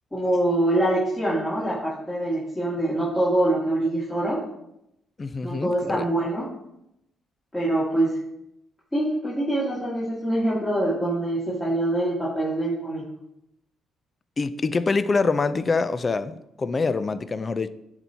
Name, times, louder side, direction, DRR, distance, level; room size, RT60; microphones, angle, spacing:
voice 1, 0.1-4.4 5.4-6.5 7.5-8.2 8.9-13.0, right 1 dB, 15° left, -8 dB, 2.0 m, -24 dB
voice 2, 5.2-6.0 14.4-17.7, left 4 dB, 35° left, 13 dB, 0.4 m, -25 dB
9.9 x 4.3 x 2.7 m, 0.83 s
cardioid pair, 90°, 0 cm